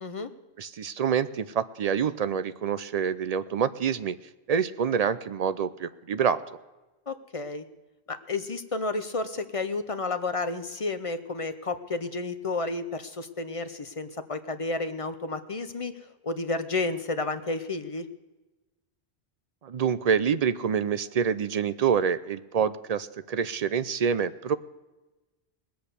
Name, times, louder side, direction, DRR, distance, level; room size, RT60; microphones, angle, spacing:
voice 1, 0.6-4.2 4.5-6.4 19.6-24.6, right 7 dB, 50° right, 13 dB, 0.5 m, -26 dB
voice 2, 7.1-7.6 8.1-15.9 16.2-18.1, left 3 dB, 35° left, 10 dB, 0.7 m, -31 dB
19.5 x 7.8 x 6.7 m, 1.1 s
omnidirectional pair, 1.1 m